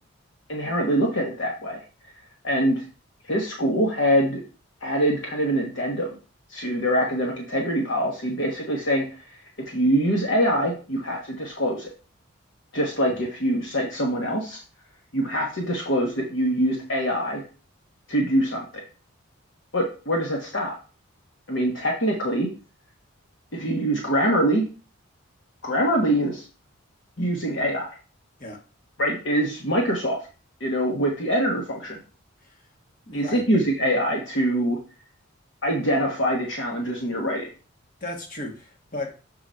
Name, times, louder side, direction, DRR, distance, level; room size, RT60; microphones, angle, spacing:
voice 1, 0.5-1.8 2.4-2.8 3.3-4.4 4.8-6.1 6.5-9.0 9.7-11.9 12.7-14.6 15.1-17.4 18.1-18.8 19.7-20.8 21.5-22.5 23.5-24.7 25.6-26.4 27.2-27.9 29.0-30.2 30.6-32.0 33.1-34.8 35.6-37.5, equal, 55° left, 0 dB, 1.2 m, -24 dB
voice 2, 33.1-33.4 38.0-39.1, left 1 dB, 40° left, 1 dB, 1.5 m, -34 dB
6.8 x 3.9 x 4.4 m, 0.34 s
head